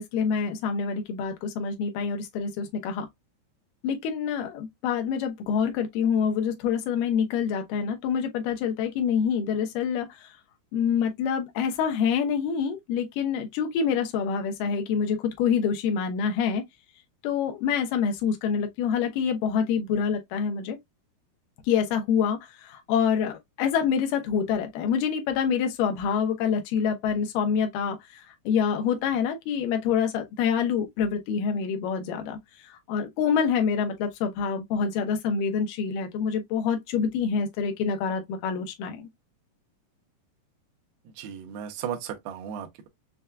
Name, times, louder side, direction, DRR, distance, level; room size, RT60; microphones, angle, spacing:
voice 1, 0.0-3.1 3.8-10.3 10.7-16.6 17.2-20.8 21.7-39.1, left 7 dB, 80° left, 1.9 m, -26 dB
voice 2, 41.2-42.9, right 8 dB, 80° right, 2.6 m, -35 dB
6.6 x 2.3 x 2.2 m
omnidirectional pair, 4.6 m